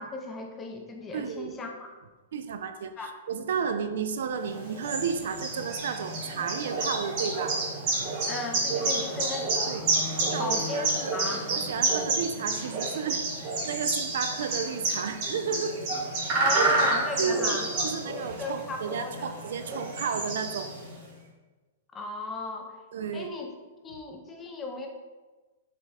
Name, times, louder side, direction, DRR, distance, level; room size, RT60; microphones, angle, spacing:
voice 1, 0.0-1.9 3.0-3.1 8.2-9.9 10.4-11.4 16.3-17.7 18.4-19.3 21.9-22.8 23.1-23.5 23.8-24.9, left 3 dB, 15° left, 2 dB, 0.4 m, -35 dB
voice 2, 1.1-1.5 2.3-2.9 3.3-7.5 8.9-9.0 9.7-9.8 10.3-11.1 11.5-15.8 17.2-20.7 22.9-23.3, right 6 dB, 70° right, 9 dB, 0.3 m, -32 dB
sound 1, 4.4-21.0, right 2 dB, 40° right, 1.4 m, -29 dB
4.4 x 2.3 x 4.1 m, 1.2 s
hypercardioid pair, 160°, 0 cm